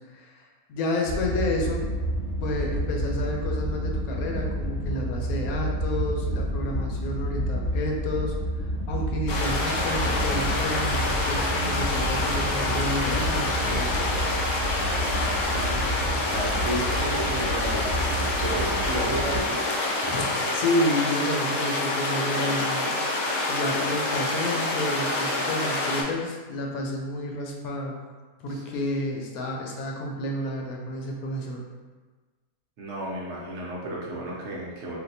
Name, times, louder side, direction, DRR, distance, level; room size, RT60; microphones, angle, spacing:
voice 1, 0.1-1.9 2.4-14.0 20.0-23.0 23.5-28.0 28.4-31.6, left 1 dB, 85° left, 0 dB, 1.1 m, -30 dB
sound 1, 1.0-19.4, equal, 15° left, 0.9 m, -29 dB
sound 2, 9.3-26.0, left 2 dB, 65° left, 0.9 m, -27 dB
voice 2, 15.5-19.6 28.5-28.6 32.8-35.0, right 2 dB, 65° right, -4 dB, 0.8 m, -33 dB
3.4 x 2.5 x 2.6 m, 1.3 s
omnidirectional pair, 1.5 m